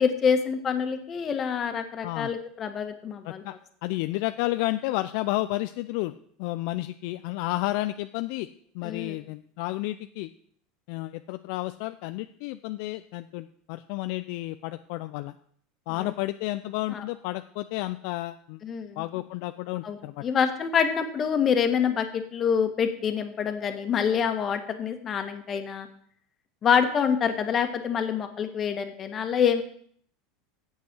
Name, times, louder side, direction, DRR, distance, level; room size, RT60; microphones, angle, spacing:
voice 1, 0.0-3.4 8.8-9.2 15.9-16.1 16.9-17.0 18.6-19.0 19.8-25.9 26.6-29.6, left 7 dB, 35° left, 7 dB, 1.5 m, -26 dB
voice 2, 3.8-6.1 6.4-8.5 8.7-10.3 10.9-15.3 15.9-18.6 19.0-20.2, left 18 dB, 65° left, 11 dB, 0.4 m, -31 dB
8.5 x 7.4 x 6.1 m, 0.62 s
supercardioid pair, 110°, 0 cm